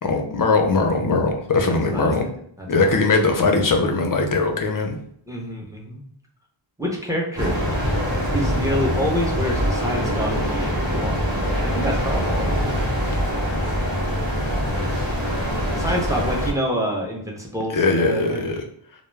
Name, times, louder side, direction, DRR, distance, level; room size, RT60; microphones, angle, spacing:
voice 1, 0.0-2.2 2.7-5.0 17.7-18.6, left 3 dB, 45° left, 3 dB, 0.5 m, -20 dB
voice 2, 1.6-2.1 2.6-2.9 5.3-6.0 6.8-7.6 8.3-12.5 15.7-18.4, equal, 5° right, -2 dB, 0.6 m, -27 dB
sound 1, 7.4-16.5, equal, 45° right, 1.0 m, -23 dB
2.2 x 2.0 x 3.1 m, 0.67 s
wide cardioid pair, 70°, 49 cm